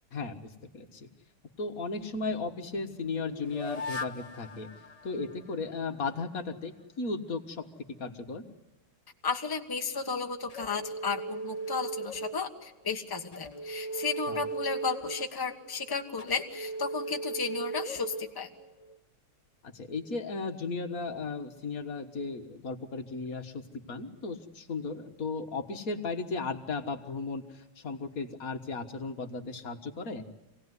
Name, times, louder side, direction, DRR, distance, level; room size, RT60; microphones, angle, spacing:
voice 1, 0.1-1.1 1.6-4.7 5.0-8.5 14.3-14.4 19.6-30.3, left 4 dB, 45° left, 5 dB, 1.8 m, -36 dB
sound 1, 2.0-6.0 10.5-12.8 13.3-19.0, right 2 dB, 85° left, 0.3 m, -39 dB
voice 2, 9.2-18.5, left 5 dB, 15° left, 4 dB, 1.2 m, -33 dB
26.5 x 17.5 x 9.7 m, 1.0 s
omnidirectional pair, 2.2 m